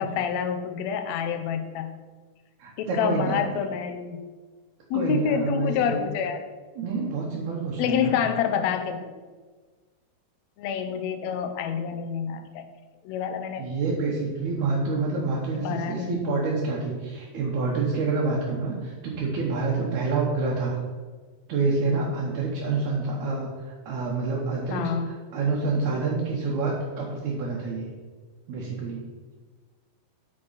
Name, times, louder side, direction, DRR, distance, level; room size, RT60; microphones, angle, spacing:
voice 1, 0.0-1.9 2.8-4.2 4.9-6.4 7.8-9.1 10.6-12.7 13.0-13.6 15.6-16.4 24.7-25.1, left 7 dB, 80° left, 7 dB, 1.9 m, -27 dB
voice 2, 2.6-3.4 4.9-6.1 6.8-8.2 13.6-20.8 21.5-27.9 28.5-29.0, right 3 dB, 75° right, -4 dB, 2.5 m, -27 dB
9.3 x 5.2 x 4.1 m, 1.4 s
omnidirectional pair, 3.4 m